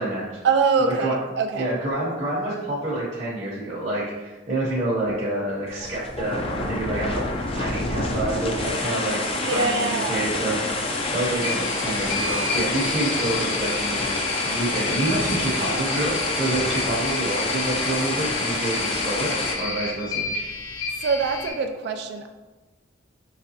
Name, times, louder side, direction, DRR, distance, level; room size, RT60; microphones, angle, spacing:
voice 1, 0.4-1.7 9.3-10.3 21.0-22.3, right 4 dB, 55° right, 5 dB, 0.3 m, -24 dB
voice 2, 1.6-7.2 7.5-9.2 9.5-14.1 14.4-19.3 19.6-20.2, right 2 dB, 35° right, -8 dB, 0.8 m, -27 dB
sound 1, 5.7-19.5, left 2 dB, 30° left, 0.4 m, -28 dB
sound 2, 11.0-21.5, left 3 dB, 85° left, 0.7 m, -30 dB
4.8 x 3.3 x 2.8 m, 1.2 s
head